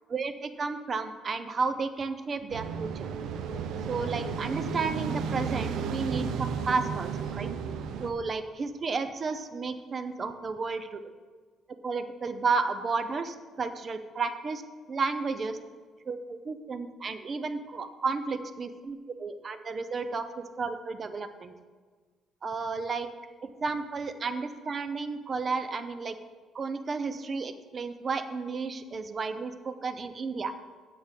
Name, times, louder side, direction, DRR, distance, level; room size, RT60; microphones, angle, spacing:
voice 1, 0.1-3.1 3.9-7.5 8.0-11.1 11.8-14.6 14.9-15.6 16.1-21.5 22.4-23.1 23.4-26.1 26.5-30.5, right 4 dB, 35° right, 10 dB, 0.7 m, -32 dB
sound 1, 2.5-8.1, right 6 dB, 80° right, 0.8 m, -33 dB
8.9 x 7.8 x 5.3 m, 1.5 s
cardioid pair, 120°, 0 cm